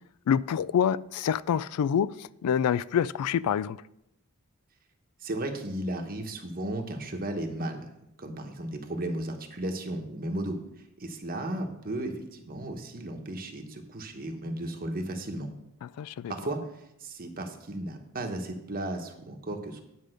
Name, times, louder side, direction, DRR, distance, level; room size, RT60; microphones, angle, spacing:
voice 1, 0.3-3.8 16.0-16.3, left 8 dB, 90° left, 0.3 m, -26 dB
voice 2, 5.2-7.9 8.2-10.6 11.0-15.5 16.3-19.8, right 1 dB, 40° right, 1.0 m, -35 dB
9.9 x 5.1 x 6.4 m
head